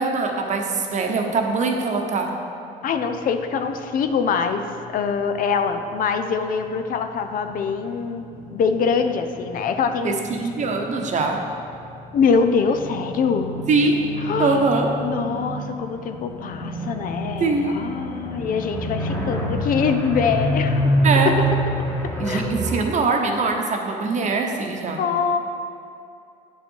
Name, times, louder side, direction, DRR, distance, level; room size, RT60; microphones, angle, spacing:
voice 1, 0.0-2.3 10.0-11.4 13.7-14.0 14.4-14.9 17.4-17.9 21.0-21.4 22.2-25.0, right 3 dB, 45° right, 3 dB, 1.0 m, -22 dB
voice 2, 2.8-10.2 12.1-13.5 14.2-14.7 15.0-20.8 22.3-22.4 25.0-25.4, left 5 dB, 55° left, 7 dB, 0.5 m, -24 dB
sound 1, 2.9-6.0 6.3-22.8, equal, 15° left, 1.3 m, -28 dB
9.1 x 5.5 x 4.6 m, 2.6 s
cardioid pair, 110°, 17 cm